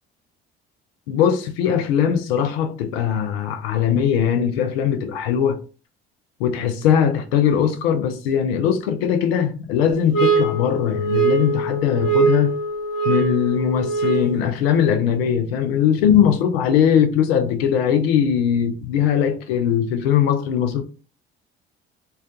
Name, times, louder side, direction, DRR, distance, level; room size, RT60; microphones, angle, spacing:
voice 1, 1.1-5.6 6.4-12.5 13.0-20.8, left 8 dB, 85° left, 0.5 m, -20 dB
sound 1, 10.1-14.5, right 4 dB, 55° left, 1.1 m, -22 dB
2.3 x 2.2 x 2.5 m
hypercardioid pair, 55°, 30 cm